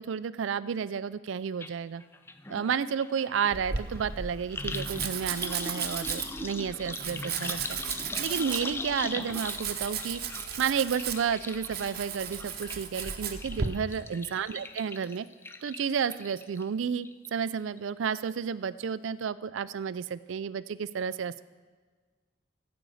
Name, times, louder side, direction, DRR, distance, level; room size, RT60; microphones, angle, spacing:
voice 1, 0.0-2.0 2.5-7.8 8.2-10.2 10.6-15.3 15.6-21.4, right 7 dB, 75° right, 16 dB, 0.4 m, -31 dB
sound 1, 1.6-1.7 2.0-16.6 17.0-17.5 17.8-17.9, left 2 dB, 10° left, 0.4 m, -40 dB
Domestic sounds home sounds, 3.5-13.7, right 7 dB, 50° right, 0.9 m, -36 dB
14.5 x 5.3 x 7.7 m, 1.5 s
head